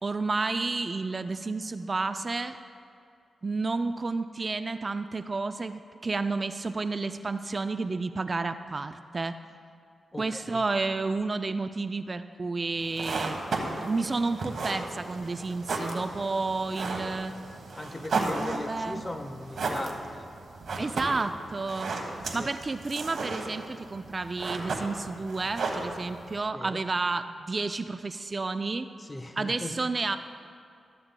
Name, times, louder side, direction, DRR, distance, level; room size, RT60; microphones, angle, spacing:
voice 1, 0.0-2.6 3.4-9.4 10.2-13.4 13.8-17.3 18.1-19.0 20.8-21.9 22.3-28.9 29.4-30.2, right 3 dB, 40° right, 10 dB, 0.3 m, -31 dB
voice 2, 10.1-10.6 17.7-20.3 20.8-20.9 22.4-22.5 26.5-26.8 29.0-29.8, left 1 dB, 20° left, 8 dB, 0.7 m, -39 dB
sound 1, 12.8-26.4, right 3 dB, 70° right, 1.2 m, -35 dB
14.0 x 11.0 x 2.2 m, 2.3 s
cardioid pair, 60°, 0 cm